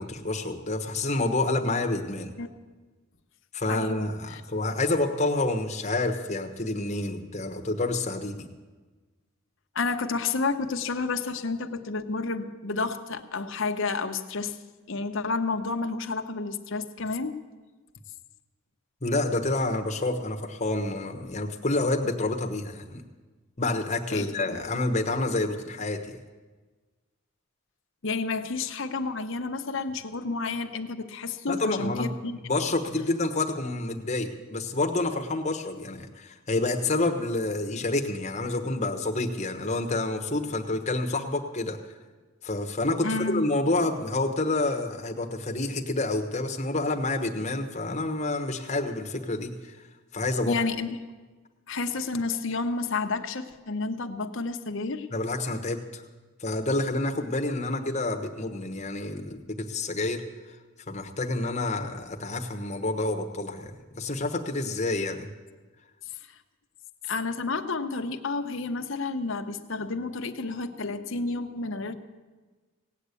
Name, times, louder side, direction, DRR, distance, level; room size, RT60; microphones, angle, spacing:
voice 1, 0.0-2.3 3.5-8.4 19.0-23.0 23.6-26.2 31.5-32.1 32.4-41.8 42.4-49.8 50.1-50.6 55.1-56.0 56.4-60.2 60.9-65.3, left 2 dB, 30° left, 5 dB, 1.1 m, -28 dB
voice 2, 3.7-4.4 9.7-14.6 14.9-17.4 24.1-24.6 28.0-32.4 43.0-43.5 50.4-51.0 51.7-55.1 67.0-71.9, left 3 dB, 60° left, 6 dB, 0.9 m, -30 dB
17.5 x 8.2 x 8.3 m, 1.3 s
head